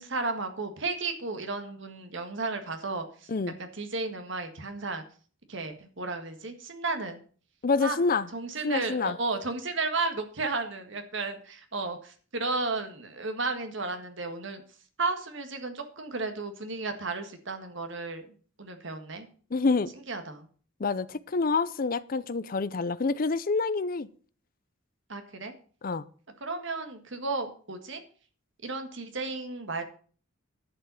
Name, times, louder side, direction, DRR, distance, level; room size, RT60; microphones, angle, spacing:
voice 1, 0.0-3.3 3.6-5.0 5.5-7.2 7.8-8.0 8.3-14.6 15.0-18.3 18.6-19.3 20.1-20.5 25.1-25.5 26.4-28.0 28.6-29.8, right 3 dB, 65° right, 1.7 m, -33 dB
voice 2, 7.6-8.3 8.6-9.2 19.5-19.9 20.8-24.1 25.8-26.0, left 4 dB, 45° left, 0.5 m, -27 dB
11.0 x 5.6 x 7.5 m
head